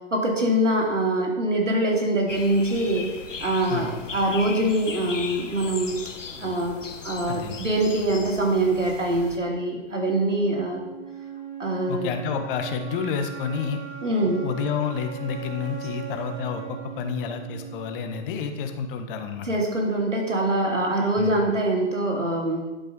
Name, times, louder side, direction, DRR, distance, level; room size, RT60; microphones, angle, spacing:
voice 1, 0.1-3.1 3.4-5.9 6.4-6.8 7.0-10.8 11.6-12.1 14.0-14.4 19.4-22.6, right 1 dB, 85° right, -1 dB, 2.8 m, -24 dB
sound 1, 2.3-9.4, left 5 dB, 85° left, 1.2 m, -38 dB
voice 2, 7.3-7.6 11.9-13.8 14.4-19.5 21.2-21.4, left 6 dB, 45° left, 6 dB, 1.5 m, -29 dB
sound 2, 10.3-18.3, right 8 dB, 45° right, 3.4 m, -39 dB
11.5 x 6.4 x 5.4 m, 1.1 s
figure-of-eight pair, 105°, 36 cm